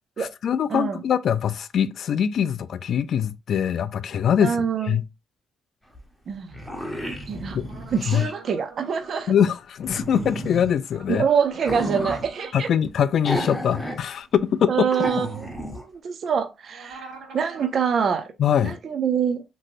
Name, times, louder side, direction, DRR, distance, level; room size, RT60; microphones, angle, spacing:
voice 1, 0.2-5.0 7.5-7.6 8.1-8.3 9.3-11.2 12.5-14.9 18.4-18.8, left 8 dB, 65° left, 0.3 m, -23 dB
voice 2, 0.7-1.0 4.4-5.0 6.3-6.6 7.3-7.6 7.9-9.3 11.1-12.7 14.7-15.5 15.7-18.3 18.6-19.4, right 7 dB, 55° right, 0.5 m, -25 dB
sound 1, 5.9-6.0 6.3-8.3 9.8-10.7 11.5-12.3 13.2-14.0 14.3-14.4 14.9-15.8, equal, 5° left, 0.8 m, -32 dB
sound 2, 7.6-9.2 10.8-12.6 16.7-17.8, right 3 dB, 70° right, 1.4 m, -45 dB
3.0 x 2.7 x 2.5 m
cardioid pair, 90°, 0 cm